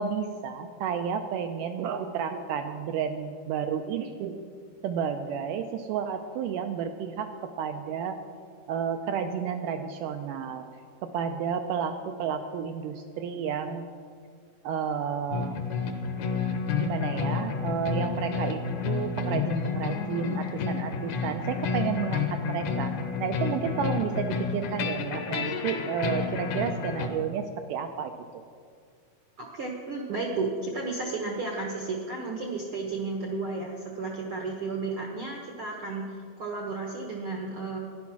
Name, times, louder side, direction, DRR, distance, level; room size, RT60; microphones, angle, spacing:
voice 1, 0.0-4.4 4.8-7.3 7.6-8.2 8.7-10.7 11.0-13.9 14.6-15.6 16.7-22.9 23.2-28.4, right 7 dB, 85° right, 7 dB, 1.9 m, -31 dB
sound 1, 15.3-27.1, left 5 dB, 65° left, 2.0 m, -30 dB
voice 2, 29.4-37.8, right 3 dB, 70° right, 0 dB, 1.3 m, -33 dB
13.5 x 10.5 x 6.1 m, 2.1 s
omnidirectional pair, 4.3 m